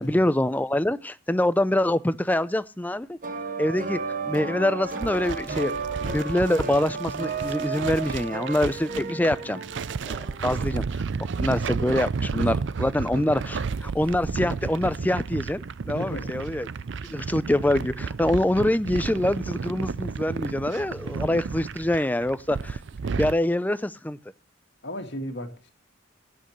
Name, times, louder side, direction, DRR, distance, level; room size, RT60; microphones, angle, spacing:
voice 1, 0.0-3.2 3.6-4.0 4.3-5.8 6.1-9.6 10.1-11.0 11.4-16.7 17.1-22.8 23.2-24.2, left 1 dB, 10° left, 0.5 m, -25 dB
sound 1, 3.2-10.8, right 4 dB, 40° right, 1.2 m, -33 dB
sound 2, 4.8-23.3, right 5 dB, 65° right, 0.5 m, -32 dB
voice 2, 15.9-16.3 24.8-25.7, equal, 55° left, 2.2 m, -34 dB
16.5 x 8.9 x 3.1 m
head